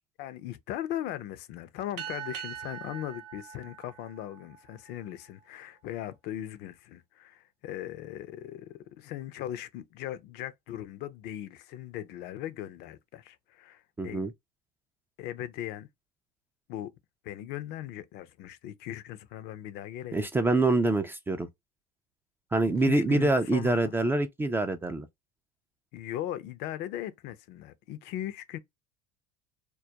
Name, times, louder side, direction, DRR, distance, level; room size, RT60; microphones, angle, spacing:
voice 1, 0.2-14.2 15.2-15.9 16.7-16.9 17.2-20.3 22.8-24.0 25.9-28.6, left 12 dB, 55° left, 0.5 m, -38 dB
sound 1, 2.0-4.9, right 10 dB, 85° right, 0.6 m, -42 dB
voice 2, 14.0-14.3 20.1-21.5 22.5-25.1, right 2 dB, 10° right, 0.3 m, -25 dB
2.2 x 2.1 x 2.7 m
hypercardioid pair, 90°, 20 cm